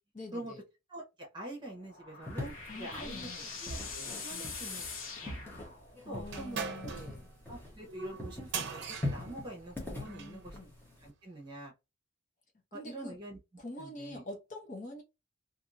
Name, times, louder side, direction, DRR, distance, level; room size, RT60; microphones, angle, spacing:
voice 1, 0.1-0.6 2.7-3.5 4.3-4.5 6.0-7.3 10.0-10.7 12.7-13.1 13.6-15.0, left 1 dB, 40° left, 0.9 m, -45 dB
voice 2, 0.9-3.3 3.6-4.9 5.2-5.4 6.1-7.0 7.5-10.6 11.0-11.7 12.7-13.4 13.8-14.2, right 1 dB, 25° right, 1.1 m, -45 dB
sound 1, 1.6-6.2, left 5 dB, 70° left, 1.2 m, -43 dB
sound 2, 2.3-7.9 8.2-11.1, left 1 dB, 10° left, 1.0 m, -42 dB
sound 3, 6.3-10.4, right 6 dB, 55° right, 0.6 m, -41 dB
2.8 x 2.7 x 2.5 m
head